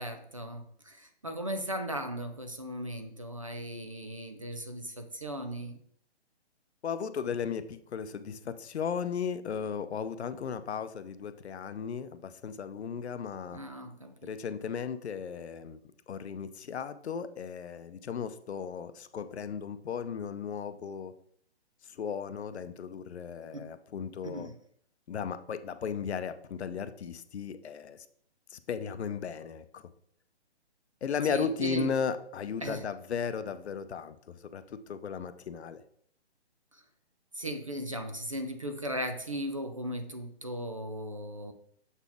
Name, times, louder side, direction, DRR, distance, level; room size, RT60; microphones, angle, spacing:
voice 1, 0.0-5.8 13.5-14.3 23.5-23.7 24.2-24.6 31.2-31.9 32.6-32.8 36.7-36.8 37.3-41.5, equal, 30° right, 7 dB, 0.4 m, -37 dB
voice 2, 6.8-13.6 14.2-15.8 16.1-21.1 21.9-24.5 25.1-28.0 28.5-29.8 31.0-35.8, left 6 dB, 75° left, 12 dB, 0.6 m, -36 dB
7.1 x 4.1 x 3.5 m, 0.64 s
hypercardioid pair, 165°, 33 cm